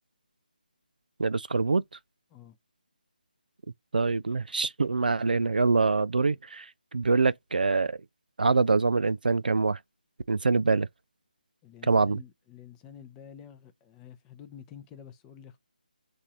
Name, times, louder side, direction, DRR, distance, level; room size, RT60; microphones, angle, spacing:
voice 1, 1.2-1.8 3.9-6.7 6.9-8.0 8.4-9.8 10.3-10.9 11.9-12.2, right 4 dB, 75° right, 0.4 m, -24 dB
voice 2, 11.6-15.6, left 8 dB, 15° left, 0.5 m, -49 dB
3.8 x 2.4 x 2.8 m
figure-of-eight pair, 155°, 5 cm